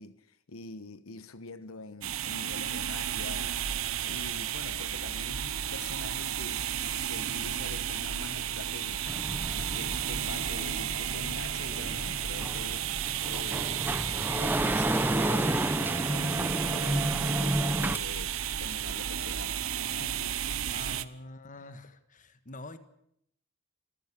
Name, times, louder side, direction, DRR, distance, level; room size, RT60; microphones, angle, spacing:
voice 1, 0.0-14.0 14.3-19.6 20.0-21.1, left 3 dB, 90° left, 1.2 m, -45 dB
sound 1, 2.0-21.0, right 10 dB, 75° right, 1.0 m, -33 dB
sound 2, 9.1-18.0, right 1 dB, 10° right, 0.8 m, -31 dB
voice 2, 20.7-22.8, left 2 dB, 40° left, 1.6 m, -45 dB
26.5 x 15.0 x 8.5 m
head